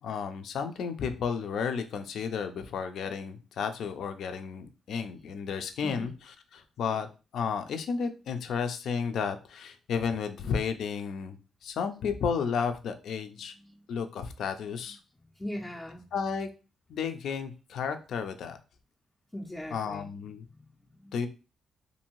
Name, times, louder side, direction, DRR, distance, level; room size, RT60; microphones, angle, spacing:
voice 1, 0.0-7.1 7.3-13.6 13.9-15.0 16.1-16.5 16.9-18.6 19.7-20.4 21.1-21.3, left 6 dB, 70° left, 8 dB, 0.4 m, -32 dB
voice 2, 15.2-16.0 19.3-20.1 20.5-21.1, left 1 dB, 15° left, 0 dB, 0.5 m, -40 dB
2.6 x 2.6 x 3.0 m, 0.32 s
cardioid pair, 100°, 0 cm